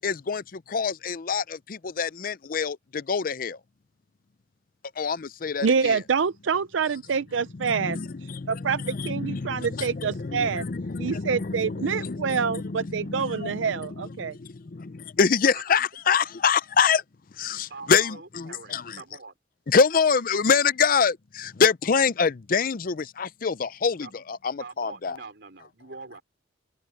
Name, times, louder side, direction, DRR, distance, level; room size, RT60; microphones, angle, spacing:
voice 1, 0.0-3.6 5.0-6.0 7.6-17.0 17.3-19.0 19.7-25.2, left 5 dB, 50° left, 0.5 m, -26 dB
voice 2, 5.6-10.7 11.0-14.4, right 6 dB, 85° right, 0.5 m, -27 dB
voice 3, 17.7-19.4 24.0-24.2 24.6-26.2, right 3 dB, 60° right, 4.5 m, -43 dB
open air
head